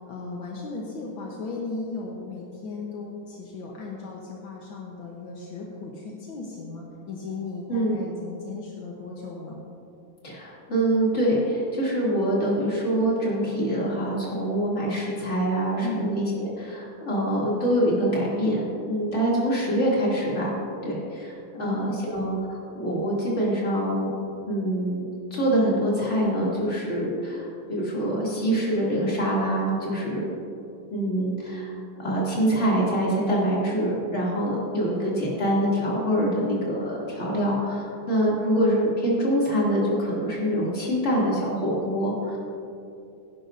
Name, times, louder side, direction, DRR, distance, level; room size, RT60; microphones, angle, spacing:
voice 1, 0.1-9.6 15.8-16.2 21.5-22.0, left 4 dB, 70° left, -2 dB, 1.8 m, -36 dB
voice 2, 10.2-20.5 20.8-24.1 24.5-25.0 25.3-30.3 30.9-31.7 32.0-42.4, right 1 dB, 35° left, -6 dB, 3.0 m, -25 dB
17.5 x 10.5 x 2.7 m, 2.7 s
omnidirectional pair, 2.3 m